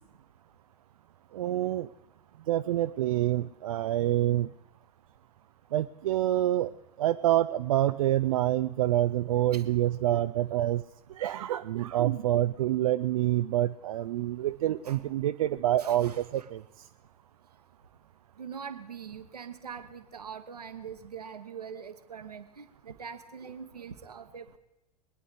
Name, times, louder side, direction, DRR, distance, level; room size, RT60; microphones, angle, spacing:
voice 1, 1.3-1.9 2.5-4.5 5.7-10.8 11.1-16.9, right 13 dB, 60° right, 11 dB, 0.4 m, -27 dB
voice 2, 15.8-16.5 18.4-24.6, right 7 dB, 75° right, 8 dB, 1.2 m, -43 dB
23.0 x 9.9 x 4.9 m, 0.92 s
figure-of-eight pair, 85°, 20 cm